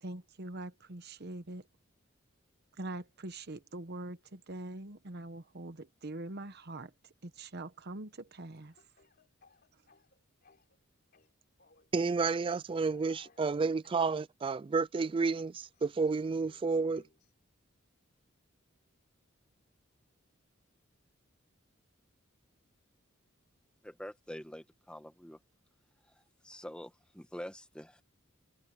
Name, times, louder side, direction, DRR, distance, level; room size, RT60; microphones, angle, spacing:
voice 1, 0.0-1.7 2.8-8.7, right 2 dB, 50° right, 1.1 m, -43 dB
Speech / Cough, 8.5-10.8 11.1-11.9 12.8-14.1 15.0-17.3, left 3 dB, 50° left, 3.5 m, -64 dB
voice 2, 11.9-17.0, right 4 dB, 25° right, 0.3 m, -31 dB
voice 3, 23.8-25.4 26.1-28.0, equal, 5° left, 1.5 m, -46 dB
head